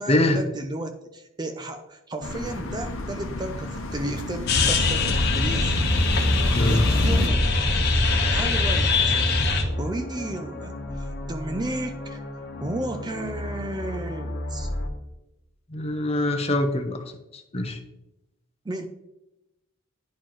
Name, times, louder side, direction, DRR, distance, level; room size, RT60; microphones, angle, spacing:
voice 1, 0.0-5.8 6.6-7.6 8.3-9.2 9.8-14.7 18.6-18.9, right 1 dB, 20° right, 6 dB, 0.4 m, -33 dB
sound 1, 2.2-7.3, left 2 dB, 75° left, 0.8 m, -29 dB
sound 2, 4.5-14.9, left 2 dB, 50° left, 1.0 m, -25 dB
voice 2, 15.7-17.0 17.3-17.8, left 1 dB, 30° left, 6 dB, 0.7 m, -23 dB
10.0 x 4.3 x 3.1 m, 0.92 s
head